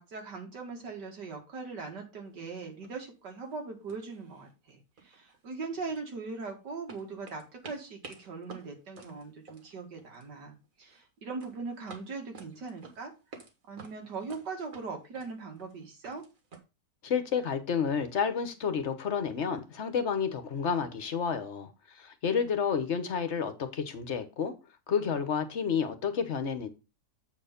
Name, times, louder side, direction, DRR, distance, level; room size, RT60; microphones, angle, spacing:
voice 1, 0.0-13.1 13.7-16.2, right 4 dB, 90° right, 2.6 m, -40 dB
sound 1, 2.3-2.4 2.8-3.1 3.4-3.6 3.9-4.7 5.0-6.5 6.9-10.4 10.6-11.0 11.4-13.5 13.8-16.6, right 4 dB, 55° right, 2.0 m, -51 dB
voice 2, 17.0-24.5 24.9-26.7, left 6 dB, 50° left, 1.2 m, -30 dB
8.1 x 4.5 x 5.2 m
omnidirectional pair, 1.8 m